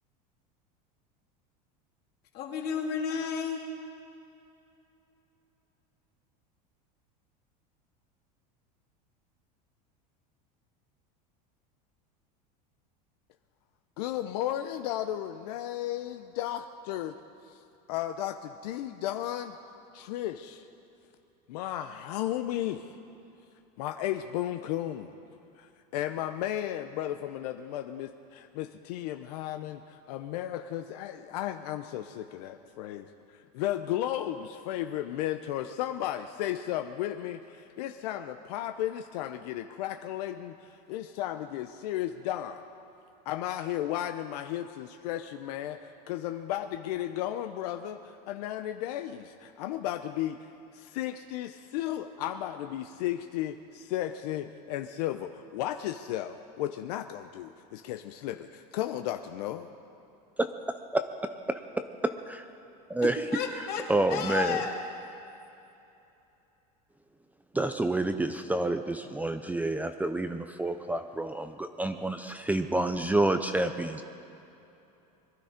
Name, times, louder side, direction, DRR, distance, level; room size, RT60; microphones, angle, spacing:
voice 1, 2.3-3.6 63.3-64.8, left 6 dB, 50° left, 0 dB, 2.7 m, -32 dB
voice 2, 14.0-17.1 17.5-17.6 17.9-19.6 19.9-20.7 21.5-22.9 23.8-25.1 25.6-25.7 25.9-42.6 43.3-45.8 46.1-59.7, left 12 dB, 75° left, 7 dB, 0.7 m, -34 dB
voice 3, 60.9-61.3 62.0-62.5 62.9-63.2 63.9-64.6 67.5-74.0, right 2 dB, 5° right, 8 dB, 0.5 m, -28 dB
22.0 x 12.0 x 5.1 m, 2.8 s
supercardioid pair, 125°, 21 cm